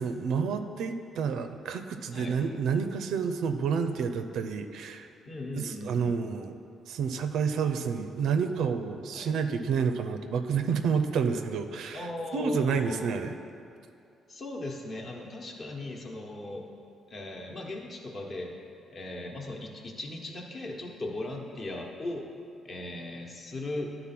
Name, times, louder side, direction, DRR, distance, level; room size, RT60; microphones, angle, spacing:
voice 1, 0.0-5.1 5.6-6.6 6.9-13.4, right 6 dB, 75° right, 7 dB, 0.5 m, -29 dB
voice 2, 5.3-6.2 9.1-9.3 11.9-13.1 14.3-16.6 17.1-18.5 18.9-22.2 22.6-24.1, left 2 dB, 35° left, 1 dB, 1.0 m, -38 dB
11.0 x 3.9 x 5.9 m, 2.5 s
cardioid pair, 150°, 0 cm